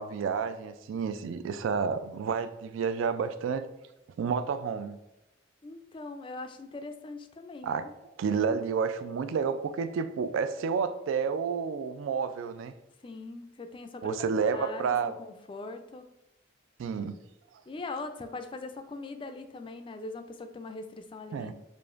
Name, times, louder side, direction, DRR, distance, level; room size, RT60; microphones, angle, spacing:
voice 1, 0.0-3.6 4.2-5.0 7.6-7.9 8.2-12.7 14.0-15.1 16.8-17.2 21.3-21.5, right 6 dB, 75° right, 11 dB, 0.3 m, -30 dB
voice 2, 5.6-7.9 13.0-16.1 17.7-21.5, left 3 dB, 25° left, 8 dB, 0.3 m, -41 dB
6.7 x 2.5 x 2.4 m, 0.94 s
head